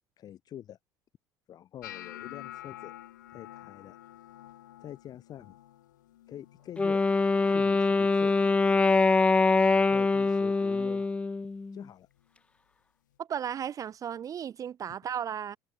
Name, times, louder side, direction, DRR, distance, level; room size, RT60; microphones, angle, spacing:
voice 1, 0.2-0.8 1.5-2.9 3.3-4.0 4.8-5.6 6.3-7.0 7.5-8.3 9.7-11.0 11.7-12.1, left 11 dB, 40° left, 1.0 m, -45 dB
sound 1, 1.8-7.9 8.2-8.7 9.1-9.6 10.2-10.4 12.2-12.3, left 14 dB, 70° left, 0.6 m, -49 dB
Wind instrument woodwind instrument, 6.8-11.8, left 3 dB, 10° left, 0.4 m, -24 dB
voice 2, 13.2-15.6, right 8 dB, 35° right, 0.7 m, -35 dB
figure-of-eight pair, 60°, 10 cm